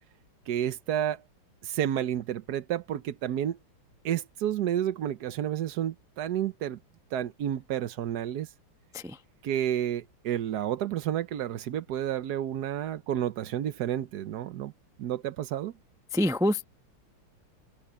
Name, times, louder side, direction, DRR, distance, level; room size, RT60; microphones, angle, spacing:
voice 1, 0.5-1.2 1.6-3.6 4.0-6.8 7.1-8.5 9.4-14.7 15.0-15.7, right 11 dB, 65° right, 1.1 m, -30 dB
voice 2, 16.1-16.6, left 1 dB, 5° right, 0.3 m, -26 dB
omnidirectional pair, 2.4 m